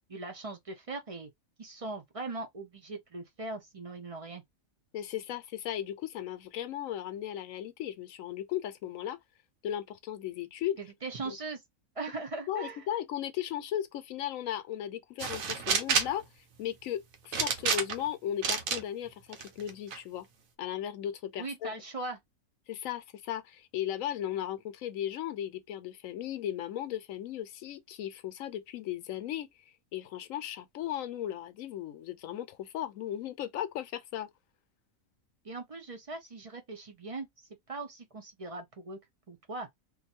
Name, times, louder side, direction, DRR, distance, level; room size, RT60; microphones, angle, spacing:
voice 1, 0.1-1.3 1.6-4.4 10.8-11.6 12.0-12.9 21.4-22.2 35.4-39.0 39.3-39.7, right 3 dB, 40° right, 0.5 m, -40 dB
voice 2, 4.9-9.2 9.6-10.8 11.2-11.4 12.5-16.2 16.6-20.3 20.6-21.7 22.7-29.5 29.9-34.3, left 11 dB, 75° left, 1.0 m, -36 dB
sound 1, 15.2-16.2 17.3-18.1 18.4-18.8 19.3-20.0, right 6 dB, 80° right, 1.1 m, -29 dB
2.6 x 2.4 x 4.1 m
omnidirectional pair, 1.4 m